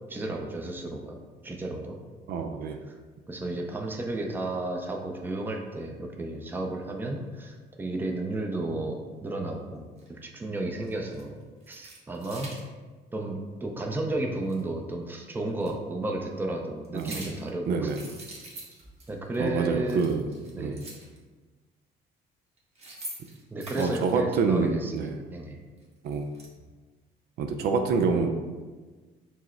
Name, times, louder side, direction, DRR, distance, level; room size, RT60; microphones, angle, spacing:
voice 1, 0.1-1.2 1.4-2.0 3.3-11.4 11.7-12.5 13.1-17.9 19.1-20.1 20.5-20.9 23.5-25.6, right 2 dB, 10° right, 1 dB, 0.5 m, -33 dB
voice 2, 2.3-2.8 16.9-17.2 17.7-18.0 19.4-20.2 20.6-20.8 23.7-25.2 26.0-26.3 27.4-28.3, right 5 dB, 70° right, 5 dB, 0.4 m, -27 dB
sound 1, 10.0-10.1 10.8-11.2 11.6-12.6 14.5-14.6 15.6-15.7 16.8-17.5 17.8-19.1 19.3-19.5 19.7-21.2 22.6-24.1 25.8-26.5, right 2 dB, 40° right, 1.1 m, -44 dB
4.6 x 2.1 x 4.3 m, 1.3 s
cardioid pair, 110°, 17 cm